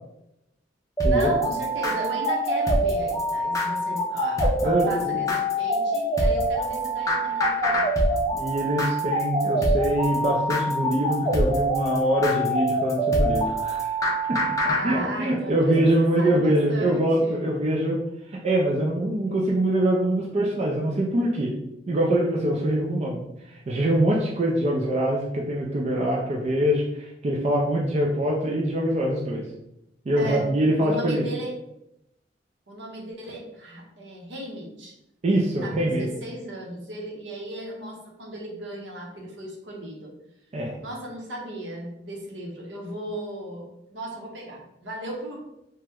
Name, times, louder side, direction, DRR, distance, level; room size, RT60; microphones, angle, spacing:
sound 1, 1.0-14.8, equal, 20° left, 0.5 m, -24 dB
voice 1, 1.1-8.3 14.8-15.7 16.2-17.6 30.2-30.4 30.8-31.5 32.7-34.9 35.6-40.1 40.8-43.7 43.9-45.5, right 1 dB, 70° right, -1 dB, 0.8 m, -36 dB
voice 2, 4.6-5.2 8.3-13.9 14.3-18.0 18.3-21.5 21.9-23.2 23.5-29.4 30.1-31.2 35.2-36.1 40.5-40.8, right 1 dB, 35° right, -2 dB, 0.4 m, -24 dB
2.9 x 2.1 x 3.4 m, 0.84 s
head